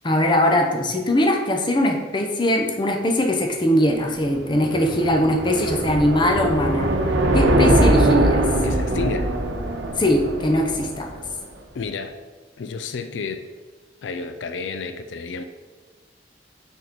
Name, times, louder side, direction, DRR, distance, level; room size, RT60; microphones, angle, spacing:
voice 1, 0.0-6.9 7.3-8.4 10.0-11.1, left 1 dB, 25° left, 3 dB, 0.7 m, -21 dB
sound 1, 3.9-11.3, right 1 dB, 85° right, 0.8 m, -21 dB
voice 2, 8.6-9.3 11.7-12.2 12.6-13.5 14.0-15.4, left 4 dB, 90° left, 8 dB, 0.4 m, -30 dB
6.2 x 3.6 x 4.5 m, 1.4 s
head